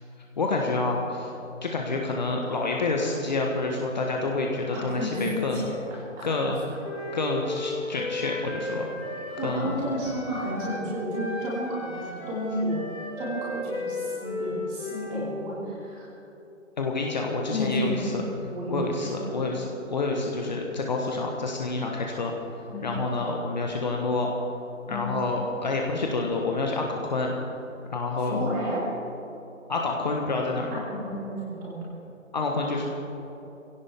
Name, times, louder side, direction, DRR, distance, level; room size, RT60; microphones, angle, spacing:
voice 1, 0.4-1.3 1.6-5.6 6.2-6.6 7.1-8.9 9.4-9.8 16.8-18.2 18.7-22.3 22.8-24.3 24.9-27.3 27.8-28.5 29.7-30.8 32.3-32.9, left 3 dB, 35° left, 0 dB, 1.3 m, -28 dB
voice 2, 4.7-5.8 6.2-6.3 9.4-12.8 13.2-16.1 17.5-18.1 18.5-19.3 22.7-22.9 24.9-25.1 28.2-28.8 30.7-31.9, equal, 15° right, -6 dB, 2.9 m, -32 dB
Wind instrument woodwind instrument, 6.8-10.9 11.1-15.3, left 2 dB, 50° left, 4.1 m, -35 dB
21.5 x 16.5 x 3.6 m, 3.0 s
figure-of-eight pair, 155°, 40 cm